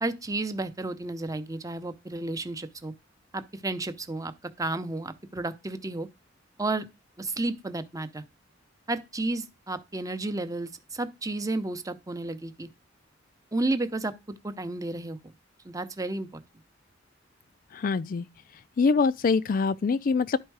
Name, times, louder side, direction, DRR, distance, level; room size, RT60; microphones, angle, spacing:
voice 1, 0.0-2.9 3.3-6.1 6.6-6.9 7.2-8.2 8.9-12.7 13.5-14.1 14.4-15.2 15.6-16.3, right 2 dB, 20° right, 0.7 m, -32 dB
voice 2, 17.7-18.3 18.8-20.4, left 4 dB, 45° left, 0.4 m, -24 dB
11.0 x 4.4 x 4.7 m
head